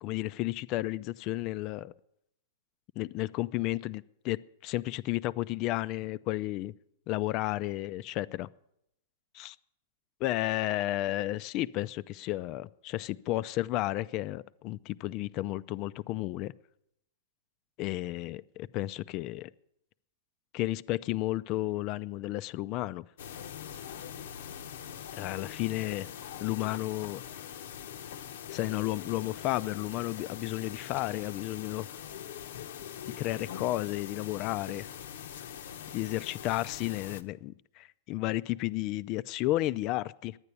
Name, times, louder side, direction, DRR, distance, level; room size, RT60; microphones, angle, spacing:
voice 1, 0.0-1.9 3.0-6.7 7.1-8.5 9.4-9.5 10.2-16.5 17.8-19.5 20.5-23.0 25.2-26.1 26.4-27.2 28.5-31.9 33.2-34.9 35.9-40.4, left 16 dB, 40° left, 0.4 m, -32 dB
sound 1, 23.2-37.2, left 9 dB, 75° left, 0.9 m, -43 dB
11.0 x 9.8 x 8.3 m
hypercardioid pair, 135°, 0 cm